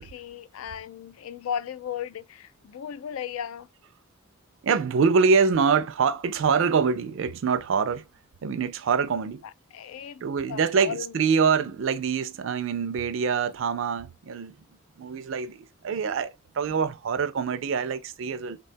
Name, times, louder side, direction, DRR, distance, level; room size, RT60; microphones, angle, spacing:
voice 1, 0.0-3.7 9.7-10.2 10.5-11.1, left 8 dB, 75° left, 0.3 m, -35 dB
voice 2, 4.6-8.0 8.4-9.4 10.2-14.6 15.0-18.6, right 5 dB, 60° right, 0.4 m, -25 dB
3.4 x 2.2 x 2.5 m
head